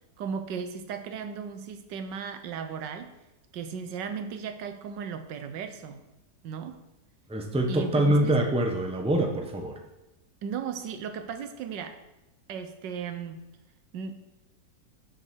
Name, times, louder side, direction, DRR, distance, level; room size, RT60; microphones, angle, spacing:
voice 1, 0.2-3.1 3.5-6.0 6.4-6.8 7.7-8.4 10.4-12.0 12.5-13.4 13.9-14.1, right 6 dB, 90° right, 8 dB, 1.5 m, -36 dB
voice 2, 7.3-9.7, right 1 dB, 5° right, 3 dB, 0.7 m, -25 dB
7.7 x 6.5 x 6.2 m, 0.98 s
omnidirectional pair, 1.9 m